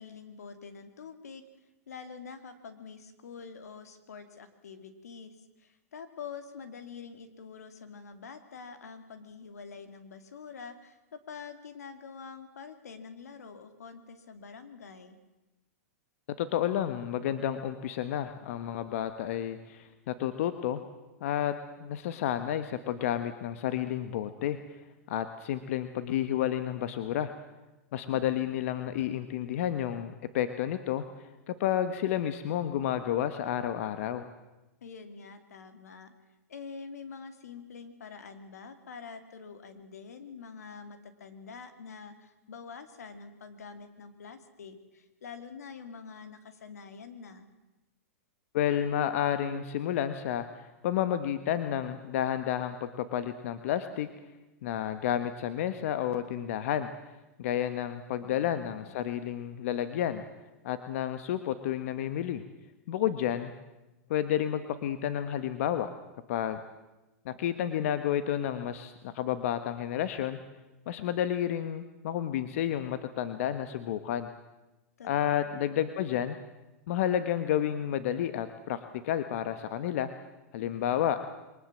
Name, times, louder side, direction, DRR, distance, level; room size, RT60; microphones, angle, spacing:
voice 1, 0.0-1.4 1.9-5.3 5.6-15.2 34.8-36.1 36.5-47.5 75.0-75.1 75.4-75.8, left 5 dB, 90° left, 9 dB, 2.7 m, -46 dB
voice 2, 16.4-20.8 21.2-24.6 25.1-27.3 27.9-31.0 31.5-34.2 48.5-54.1 54.6-56.9 57.4-60.2 60.6-62.4 62.9-63.5 64.1-65.9 66.3-66.6 67.2-70.4 70.9-74.3 75.0-76.4 76.9-80.1 80.5-81.2, left 10 dB, 60° left, 10 dB, 1.3 m, -31 dB
23.0 x 19.5 x 7.5 m, 1.0 s
hypercardioid pair, 130°, 8 cm